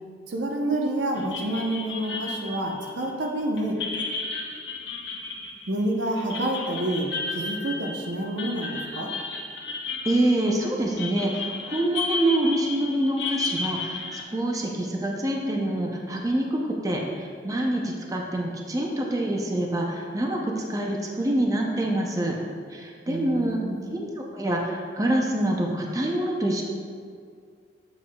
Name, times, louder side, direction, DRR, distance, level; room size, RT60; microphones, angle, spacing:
voice 1, 0.3-3.8 5.7-9.2 23.1-23.9, right 1 dB, 85° right, 1 dB, 0.9 m, -28 dB
sound 1, 1.2-14.2, left 4 dB, 70° left, 1.0 m, -33 dB
voice 2, 10.0-22.4 22.7-23.6 23.9-26.6, right 1 dB, 20° right, -1 dB, 0.6 m, -26 dB
7.9 x 7.4 x 2.3 m, 2.2 s
head